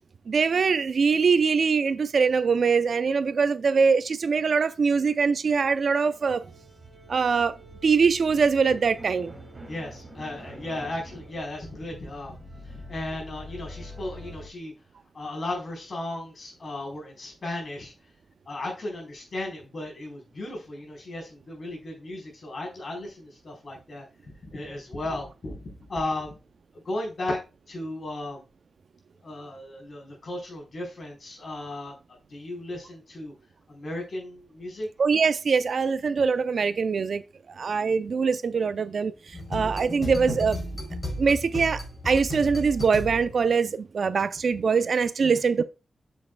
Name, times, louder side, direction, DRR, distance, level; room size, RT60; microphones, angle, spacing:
voice 1, 0.3-6.4 7.1-9.3 35.0-37.2 37.5-40.6 41.2-45.6, right 5 dB, 65° right, 0.5 m, -23 dB
sound 1, 6.1-14.5, equal, 25° right, 2.6 m, -45 dB
voice 2, 9.7-12.4 12.6-14.7 15.1-17.9 18.5-26.4 26.7-27.4 27.7-28.4 29.2-32.0 32.3-33.3 33.7-34.9 39.9-40.0 45.2-45.4, left 2 dB, 50° left, 4.1 m, -35 dB
sound 2, 39.3-43.5, equal, 30° left, 4.4 m, -34 dB
7.7 x 7.3 x 2.3 m
wide cardioid pair, 125°, 0 cm